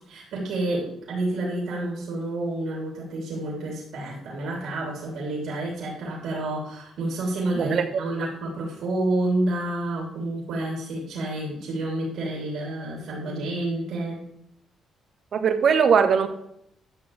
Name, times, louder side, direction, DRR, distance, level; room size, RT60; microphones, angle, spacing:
voice 1, 0.0-14.2, right 2 dB, 80° right, -4 dB, 2.9 m, -29 dB
voice 2, 15.3-16.3, right 6 dB, 60° right, 9 dB, 1.0 m, -20 dB
11.0 x 5.9 x 3.3 m, 0.75 s
cardioid pair, 90°, 0 cm